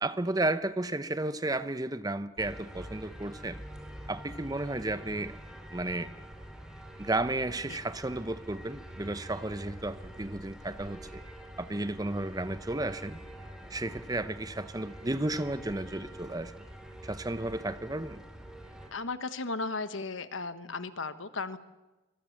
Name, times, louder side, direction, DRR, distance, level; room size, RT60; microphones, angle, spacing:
voice 1, 0.0-3.6 4.1-5.4 5.7-6.1 7.0-11.2 11.6-13.2 13.7-16.5 17.0-18.2, right 2 dB, 20° right, 0.7 m, -33 dB
sound 1, 2.4-18.9, right 1 dB, 5° right, 2.9 m, -46 dB
voice 2, 18.9-21.6, left 3 dB, 75° left, 1.3 m, -35 dB
25.0 x 22.0 x 7.3 m
head